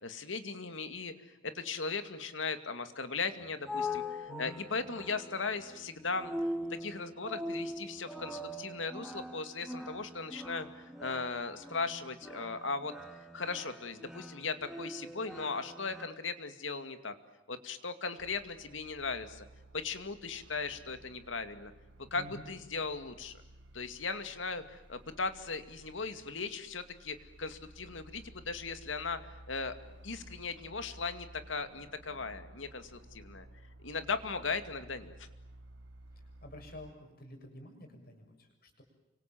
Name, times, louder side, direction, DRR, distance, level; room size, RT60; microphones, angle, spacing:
voice 1, 0.0-1.1 1.4-6.3 6.7-12.9 13.3-17.1 17.5-19.5 19.7-21.7 22.1-23.3 23.7-29.7 30.0-33.5 33.8-35.3, left 4 dB, 85° left, 9 dB, 2.4 m, -38 dB
sound 1, 3.2-16.1, left 1 dB, 5° right, 2.2 m, -42 dB
voice 2, 4.3-4.6 22.1-22.5 36.1-38.8, left 1 dB, 55° left, 4 dB, 7.1 m, -49 dB
sound 2, 18.2-36.9, right 1 dB, 70° right, 1.6 m, -55 dB
29.5 x 25.5 x 7.7 m, 1.0 s
head